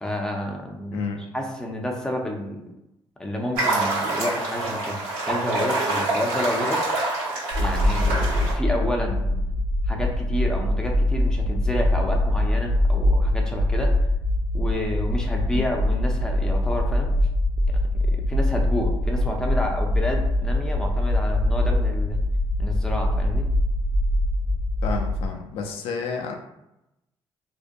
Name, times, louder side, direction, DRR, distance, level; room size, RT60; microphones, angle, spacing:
voice 1, 0.0-1.0 1.3-2.7 3.2-5.0 5.3-6.9 7.6-9.4 9.9-13.9 14.5-17.1 18.0-22.2 22.6-23.5, left 1 dB, 5° left, 1 dB, 0.4 m, -30 dB
voice 2, 0.9-1.2 15.5-15.7 24.8-26.3, left 5 dB, 80° left, 3 dB, 0.4 m, -30 dB
sound 1, 3.6-8.5, right 2 dB, 90° right, 1.1 m, -26 dB
sound 2, 7.5-25.3, left 1 dB, 70° right, 0.8 m, -23 dB
2.5 x 2.1 x 2.5 m, 0.89 s
cardioid pair, 100°, 10 cm